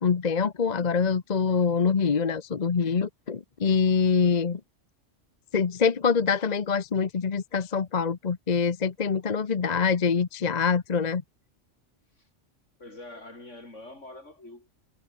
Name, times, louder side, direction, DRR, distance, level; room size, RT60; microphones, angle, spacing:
voice 1, 0.0-4.6 5.5-11.2, left 5 dB, 35° left, 0.9 m, -25 dB
voice 2, 12.8-14.7, left 2 dB, 70° left, 6.2 m, -44 dB
omnidirectional pair, 1.3 m